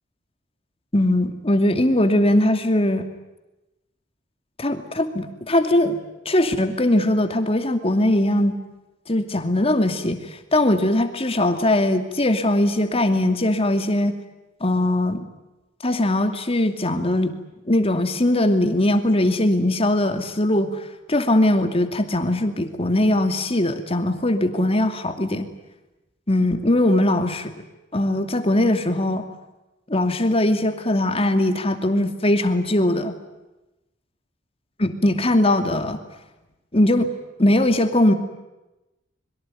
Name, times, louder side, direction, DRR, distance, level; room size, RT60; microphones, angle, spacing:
voice 1, 0.9-3.1 4.6-6.0 6.3-8.6 9.1-14.2 14.6-15.3 15.8-17.4 17.7-20.8 21.1-25.5 26.3-27.6 27.9-29.3 29.9-33.2 34.8-36.0 36.7-37.1 37.4-38.1, left 1 dB, 30° left, 7 dB, 2.6 m, -20 dB
25.5 x 23.0 x 9.2 m, 0.99 s
head